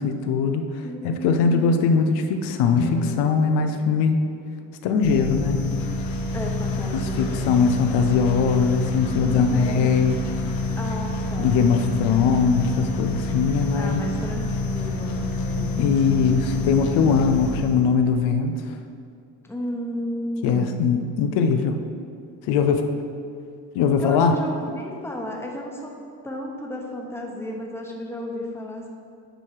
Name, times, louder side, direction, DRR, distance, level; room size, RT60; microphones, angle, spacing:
voice 1, 0.0-4.2 4.8-5.6 6.9-10.2 11.4-14.0 15.8-18.7 20.4-21.8 22.5-22.9 23.7-24.4, left 5 dB, 90° left, 6 dB, 0.7 m, -21 dB
voice 2, 0.8-1.8 6.3-7.6 9.1-10.1 10.8-11.6 13.8-16.1 19.4-20.8 24.0-25.9 26.2-28.9, left 1 dB, 5° left, 0 dB, 1.1 m, -32 dB
sound 1, 2.7-6.0, left 3 dB, 40° left, 0.7 m, -35 dB
sound 2, 5.0-18.0, left 2 dB, 65° left, 1.1 m, -27 dB
9.0 x 4.7 x 4.8 m, 2.5 s
cardioid pair, 115°, 39 cm